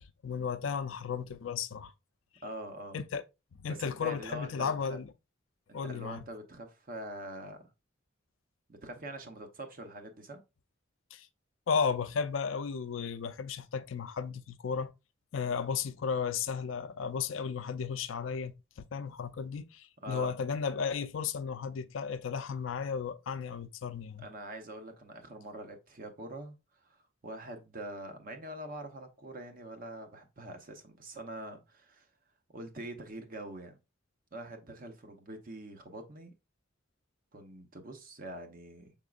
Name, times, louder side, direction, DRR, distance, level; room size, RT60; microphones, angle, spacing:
voice 1, 0.2-1.9 2.9-3.2 3.6-5.1 5.7-6.2 11.1-11.3 11.7-14.9 15.3-24.3, left 6 dB, 75° left, 0.4 m, -34 dB
voice 2, 2.4-3.0 3.7-5.0 5.7-7.7 8.7-10.4 20.0-20.3 24.2-26.6 26.8-27.0 27.2-32.1 32.5-33.8 34.3-36.3 37.3-38.9, right 1 dB, 45° right, 0.8 m, -44 dB
6.0 x 3.6 x 2.4 m
head